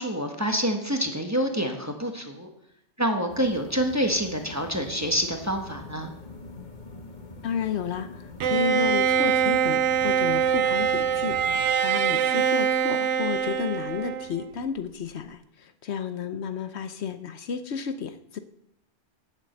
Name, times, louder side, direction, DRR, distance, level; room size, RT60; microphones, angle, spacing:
voice 1, 0.0-2.5 3.0-6.1, equal, 15° right, 3 dB, 1.1 m, -27 dB
sound 1, 3.3-11.7, left 3 dB, 40° left, 1.3 m, -43 dB
voice 2, 7.4-18.4, left 7 dB, 70° left, 10 dB, 1.0 m, -32 dB
Bowed string instrument, 8.4-14.5, right 8 dB, 80° right, 1.0 m, -24 dB
8.8 x 7.4 x 7.7 m, 0.78 s
omnidirectional pair, 1.2 m